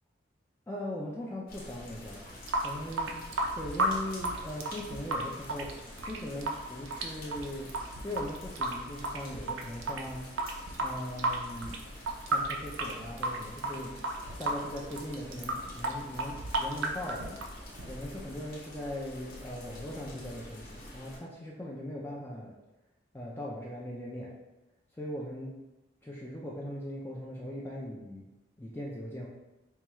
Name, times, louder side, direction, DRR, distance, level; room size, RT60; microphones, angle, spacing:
voice 1, 0.7-2.4 2.6-3.2 3.5-5.7 6.0-7.7 8.0-10.2 10.8-11.8 12.2-13.9 14.4-17.5 17.8-22.5 23.1-24.3 25.0-25.5 26.0-28.2 28.6-29.3, left 1 dB, 10° left, -5 dB, 0.4 m, -39 dB
sound 1, 1.5-21.2, left 1 dB, 45° left, 0.9 m, -47 dB
Water tap faucet / Sink (filling or washing) / Drip, 2.3-18.2, right 2 dB, 90° right, 0.5 m, -34 dB
4.6 x 2.3 x 3.0 m, 0.98 s
head